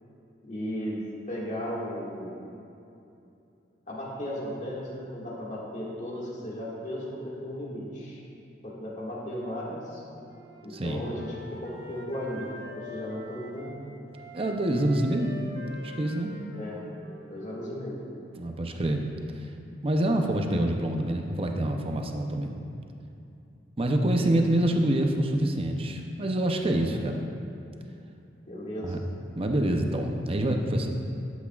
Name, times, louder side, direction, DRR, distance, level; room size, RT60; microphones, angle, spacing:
voice 1, 0.4-1.0 1.3-2.4 3.9-8.2 8.6-10.0 10.6-13.8 16.5-16.8 17.2-18.0 26.8-27.3 28.5-29.0, equal, 45° left, -5 dB, 1.9 m, -36 dB
Wind instrument woodwind instrument, 10.3-13.8 14.1-17.9, equal, 80° right, 1.0 m, -45 dB
voice 2, 10.7-11.0 14.3-15.3 15.8-16.4 18.4-19.0 19.8-22.6 23.8-27.2 28.8-29.0 29.4-30.9, right 1 dB, 35° right, 3 dB, 0.6 m, -26 dB
12.0 x 8.3 x 2.4 m, 2.7 s
head